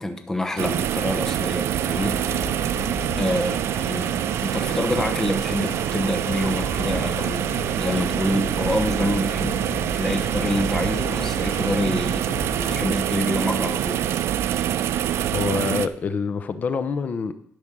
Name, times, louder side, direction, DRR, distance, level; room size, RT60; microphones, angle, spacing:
voice 1, 0.0-2.7 3.2-4.1 4.4-12.2 12.6-14.1, left 1 dB, 10° left, 6 dB, 0.9 m, -27 dB
sound 1, 0.6-15.9, right 10 dB, 65° right, 0.4 m, -25 dB
sound 2, 1.9-12.9, left 4 dB, 70° left, 1.4 m, -36 dB
voice 2, 15.3-17.3, left 5 dB, 35° left, 11 dB, 0.7 m, -26 dB
12.0 x 5.2 x 6.1 m, 0.70 s
cardioid pair, 175°, 5 cm